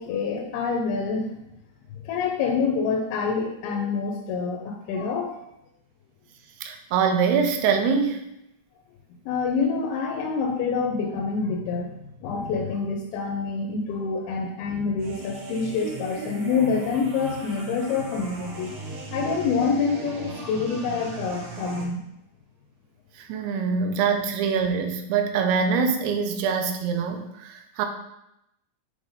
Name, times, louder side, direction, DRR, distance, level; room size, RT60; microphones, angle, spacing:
voice 1, 0.0-1.3 2.0-5.3 9.3-11.9 12.2-22.0, left 5 dB, 80° left, 0 dB, 2.5 m, -27 dB
voice 2, 6.6-8.2 23.2-27.9, right 6 dB, 85° right, 6 dB, 2.7 m, -24 dB
sound 1, 15.0-21.8, right 4 dB, 65° right, 1.7 m, -37 dB
8.0 x 3.3 x 4.0 m, 0.83 s
omnidirectional pair, 4.6 m